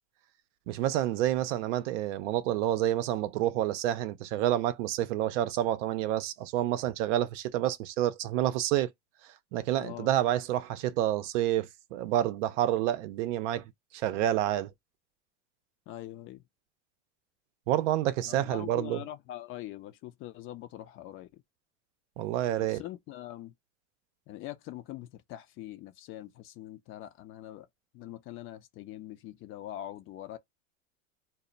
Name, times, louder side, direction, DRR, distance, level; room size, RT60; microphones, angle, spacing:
voice 1, 0.7-8.9 9.5-13.6 13.9-14.7 17.7-19.0 22.2-22.8, right 12 dB, 70° right, 0.6 m, -28 dB
voice 2, 9.8-10.1 15.9-16.4 18.3-21.4 22.6-23.5 24.3-27.7 27.9-30.4, left 14 dB, 35° left, 0.4 m, -43 dB
2.1 x 2.0 x 3.7 m
supercardioid pair, 120°, 37 cm